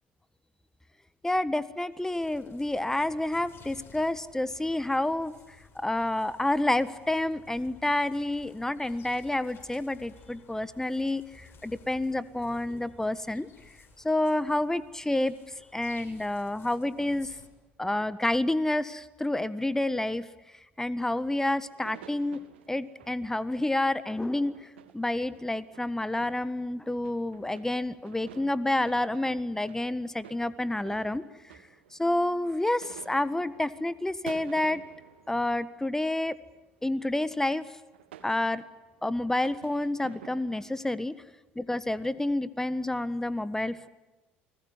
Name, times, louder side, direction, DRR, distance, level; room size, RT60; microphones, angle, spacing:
voice 1, 1.2-5.3 5.7-13.5 14.0-15.3 15.7-17.4 17.8-20.3 20.8-22.4 22.7-31.2 32.0-34.8 35.3-36.4 36.8-37.7 38.2-38.6 39.0-41.2 41.5-43.9, left 1 dB, 10° left, 16 dB, 1.5 m, -29 dB
sound 1, 1.8-17.5, left 4 dB, 40° left, 6.8 m, -56 dB
sound 2, 21.0-32.5 32.8-36.4 37.2-37.6 37.8-39.1 39.4-40.9, right 10 dB, 80° right, 1.7 m, -52 dB
29.5 x 20.5 x 9.7 m, 1.1 s
hypercardioid pair, 60°, 6 cm